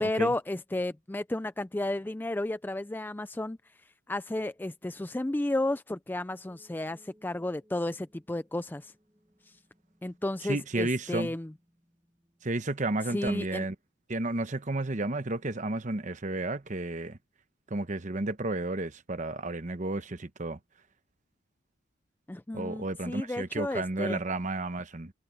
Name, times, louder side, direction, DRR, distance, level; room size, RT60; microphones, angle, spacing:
voice 1, 0.0-3.6 4.1-8.9 9.5-9.6 10.0-11.5 13.1-13.6 22.3-24.2, left 1 dB, 10° left, 0.3 m, -32 dB
sound 1, 6.4-13.4, equal, 10° right, 7.7 m, -66 dB
voice 2, 10.5-11.3 12.4-13.7 14.1-17.2 17.7-20.6 22.5-25.1, right 2 dB, 35° right, 0.9 m, -32 dB
head